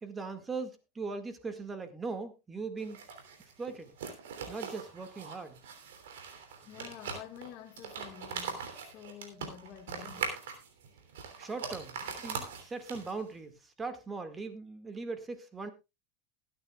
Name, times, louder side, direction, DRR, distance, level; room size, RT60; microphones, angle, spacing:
voice 1, 0.0-3.0 3.6-3.9 4.5-5.6 11.4-15.7, right 4 dB, 20° right, 2.0 m, -40 dB
sound 1, 2.8-13.3, right 6 dB, 80° right, 3.1 m, -42 dB
voice 2, 6.6-10.4, left 10 dB, 45° left, 1.7 m, -49 dB
21.0 x 9.3 x 2.4 m
supercardioid pair, 115°, 0 cm